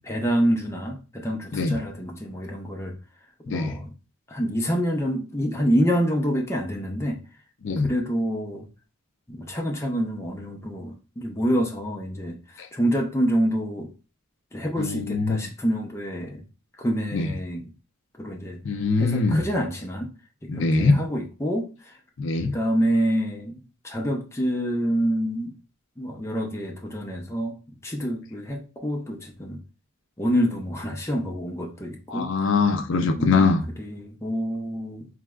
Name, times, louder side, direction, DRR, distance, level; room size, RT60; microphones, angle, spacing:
voice 1, 0.0-2.9 3.4-3.9 4.3-7.2 7.8-8.7 9.3-13.9 14.5-16.4 16.8-17.7 18.2-18.6 19.0-20.1 20.5-21.9 22.4-25.5 26.0-27.6 27.8-29.6 30.2-32.3 33.0-33.5 33.8-35.1, equal, 15° left, 0.7 m, -27 dB
voice 2, 3.5-3.8 7.6-7.9 12.6-12.7 14.8-15.4 17.1-17.3 18.6-19.4 20.5-21.0 22.2-22.6 32.1-33.6, left 3 dB, 60° left, 0.4 m, -22 dB
4.8 x 3.2 x 2.3 m
head